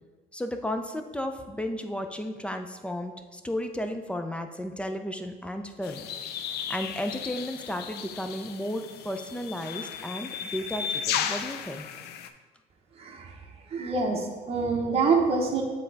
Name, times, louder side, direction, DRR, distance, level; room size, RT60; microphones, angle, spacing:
voice 1, 0.3-6.1 6.7-11.9, left 1 dB, 5° left, 6 dB, 0.4 m, -33 dB
sound 1, 5.8-12.3, left 8 dB, 70° left, 0.4 m, -35 dB
voice 2, 13.0-13.3 13.7-15.6, right 4 dB, 35° right, 0 dB, 0.8 m, -26 dB
7.3 x 3.4 x 4.0 m, 1.3 s
cardioid pair, 110°, 17 cm